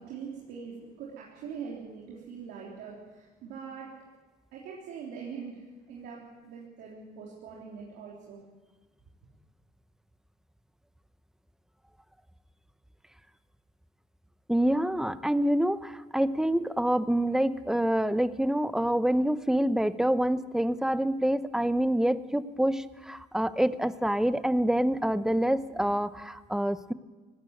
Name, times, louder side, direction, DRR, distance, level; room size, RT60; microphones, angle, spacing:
voice 1, 0.0-3.9 4.5-8.4, right 6 dB, 85° right, -4 dB, 3.6 m, -42 dB
voice 2, 14.5-26.9, right 1 dB, 5° right, 13 dB, 0.8 m, -26 dB
19.0 x 16.5 x 9.1 m, 1.3 s
cardioid pair, 110°, 17 cm